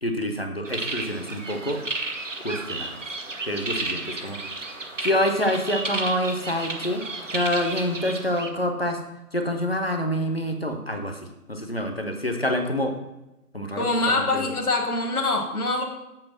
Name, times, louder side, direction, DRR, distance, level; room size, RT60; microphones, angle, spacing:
voice 1, 0.0-1.8 2.4-3.0 3.5-4.4 5.0-7.0 7.3-9.0 9.3-11.2 11.5-13.0 13.5-14.5, equal, 40° left, 5 dB, 0.8 m, -27 dB
sound 1, 0.6-8.5, right 3 dB, 50° right, 0.9 m, -33 dB
voice 2, 13.8-15.8, left 2 dB, 65° left, 2 dB, 1.5 m, -24 dB
7.7 x 4.9 x 6.0 m, 0.95 s
figure-of-eight pair, 175°, 47 cm